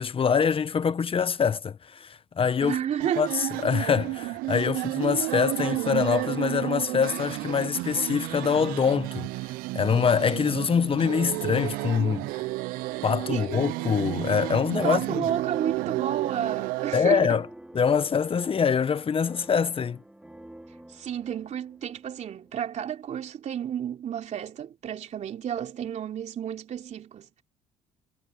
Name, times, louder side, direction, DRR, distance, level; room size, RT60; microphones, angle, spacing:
voice 1, 0.0-2.8 3.2-9.3 9.7-12.4 13.0-15.2 16.9-17.5 17.7-20.0, left 6 dB, 40° left, 1.3 m, -24 dB
voice 2, 2.6-3.3 13.3-13.7 14.8-17.4 20.9-27.3, right 9 dB, 50° right, 3.4 m, -31 dB
sound 1, 3.0-17.0, right 21 dB, 75° right, 0.5 m, -31 dB
sound 2, 13.7-22.8, right 1 dB, 5° right, 5.3 m, -50 dB
supercardioid pair, 65°, 15 cm